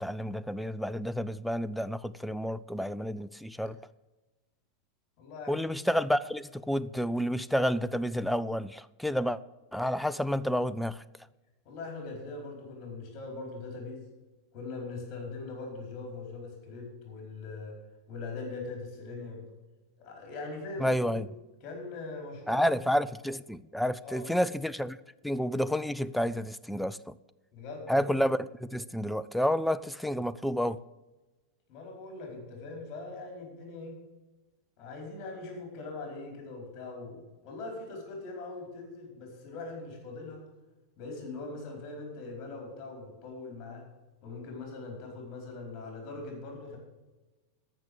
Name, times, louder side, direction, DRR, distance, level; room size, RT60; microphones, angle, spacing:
voice 1, 0.0-3.8 5.5-9.4 9.7-11.0 20.8-21.3 22.5-25.0 25.2-27.1 27.9-30.8, equal, ahead, 0.4 m, -30 dB
voice 2, 5.2-5.7 11.6-14.0 14.5-17.8 18.1-19.4 20.0-21.2 21.6-22.7 24.0-24.3 27.5-28.0 31.7-33.9 34.8-40.4 41.0-43.8 44.2-46.8, left 3 dB, 35° left, 4.6 m, -41 dB
13.5 x 6.3 x 7.0 m
figure-of-eight pair, 90°, 0 cm